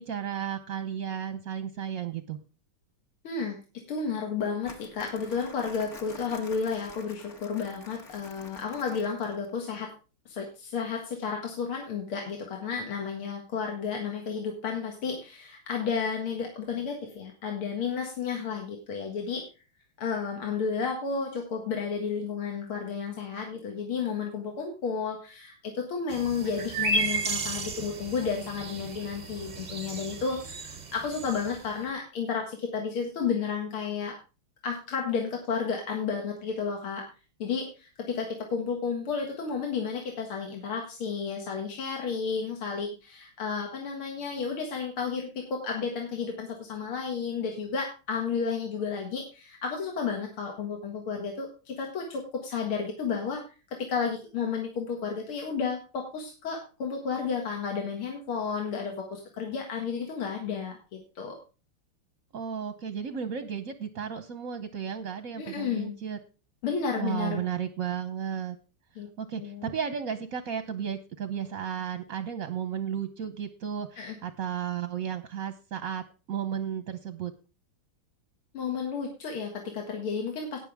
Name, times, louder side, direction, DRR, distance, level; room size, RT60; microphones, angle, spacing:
voice 1, 0.0-2.4 62.3-66.2 67.0-68.6 69.2-77.3, right 8 dB, 55° right, 10 dB, 1.0 m, -34 dB
voice 2, 3.2-3.6 3.9-9.9 10.3-19.4 20.0-34.2 34.6-37.1 37.4-53.4 53.8-61.4 65.4-65.9 66.6-67.4 69.0-69.1 69.4-69.7 74.0-74.2 78.5-80.6, left 5 dB, 80° left, 1 dB, 2.6 m, -32 dB
Crumpling crinkling, 4.6-9.5, left 3 dB, 35° left, 1.7 m, -48 dB
sound 1, 26.1-31.7, right 2 dB, 40° right, 0.6 m, -33 dB
18.5 x 6.3 x 3.5 m, 0.33 s
omnidirectional pair, 2.3 m